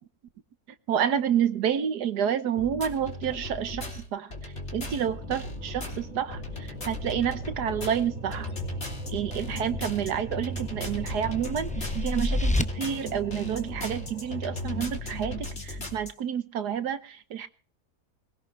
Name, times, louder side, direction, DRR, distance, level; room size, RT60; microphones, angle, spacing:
voice 1, 0.9-8.5 9.1-17.5, right 8 dB, 80° right, 1.6 m, -29 dB
sound 1, 2.6-16.1, left 2 dB, 40° left, 3.3 m, -37 dB
sound 2, 4.8-14.8, equal, 25° right, 2.7 m, -41 dB
sound 3, 10.3-12.6, left 2 dB, 10° left, 0.3 m, -30 dB
22.5 x 16.5 x 3.3 m
omnidirectional pair, 1.7 m